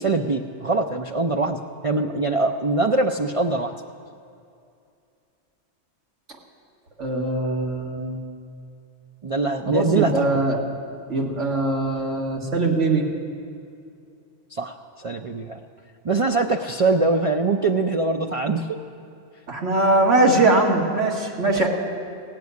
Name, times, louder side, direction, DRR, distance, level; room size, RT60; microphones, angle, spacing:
voice 1, 0.0-1.6 1.8-3.7 9.2-10.4 14.5-15.6 16.0-18.7 21.5-21.7, right 3 dB, 45° right, 2 dB, 0.5 m, -23 dB
voice 2, 7.0-8.2 9.7-10.6 11.1-13.1 19.5-21.7, right 2 dB, 90° right, -1 dB, 2.1 m, -21 dB
17.0 x 7.6 x 9.5 m, 2.5 s
omnidirectional pair, 1.2 m